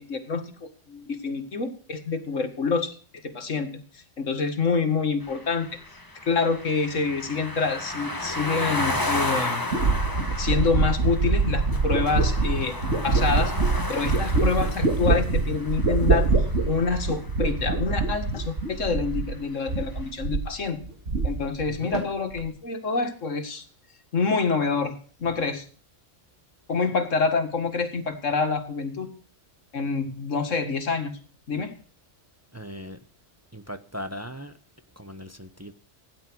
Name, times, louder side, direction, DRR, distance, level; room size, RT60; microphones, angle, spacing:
voice 1, 0.0-3.7 4.2-5.7 6.3-9.6 10.4-13.5 13.9-16.3 16.7-20.8 21.2-23.6 24.1-24.9 25.2-25.6 26.7-29.1 29.7-31.1 31.5-31.7, left 4 dB, 85° left, 8 dB, 2.3 m, -27 dB
sound 1, 5.2-17.3, left 1 dB, 15° left, 1.7 m, -33 dB
sound 2, 9.7-19.4 19.7-20.5 20.8-21.7 21.9-22.5, right 3 dB, 70° right, 2.6 m, -24 dB
voice 2, 32.5-33.0 33.5-34.5 35.0-35.7, equal, 15° right, 9 dB, 0.9 m, -38 dB
17.0 x 11.0 x 6.2 m, 0.41 s
omnidirectional pair, 1.3 m